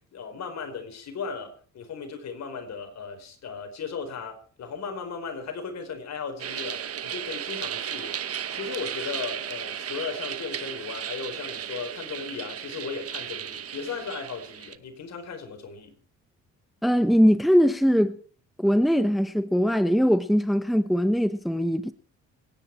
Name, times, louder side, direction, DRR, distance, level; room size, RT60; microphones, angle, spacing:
voice 1, 0.1-8.2 8.5-15.9, left 5 dB, 60° left, 4.5 m, -36 dB
sound 1, 6.4-14.8, right 9 dB, 50° right, 1.1 m, -35 dB
voice 2, 16.8-18.2 18.6-21.9, equal, ahead, 1.0 m, -21 dB
26.5 x 10.0 x 4.6 m
cardioid pair, 90°, 30 cm